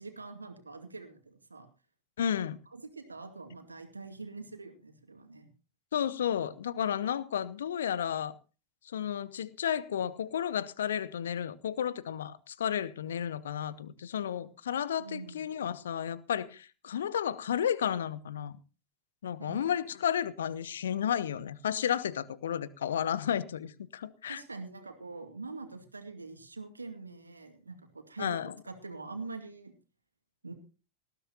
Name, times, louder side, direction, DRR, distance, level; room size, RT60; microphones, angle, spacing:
voice 1, 0.0-1.7 2.2-2.3 2.7-5.5 15.0-15.4 19.4-19.8 24.3-28.4 28.6-29.7 30.4-30.5, right 3 dB, 80° right, 2.2 m, -44 dB
voice 2, 2.2-2.6 5.9-8.3 8.8-18.6 19.2-24.4 28.2-28.5, left 9 dB, 65° left, 0.9 m, -32 dB
19.0 x 14.0 x 2.9 m
figure-of-eight pair, 90°, 0 cm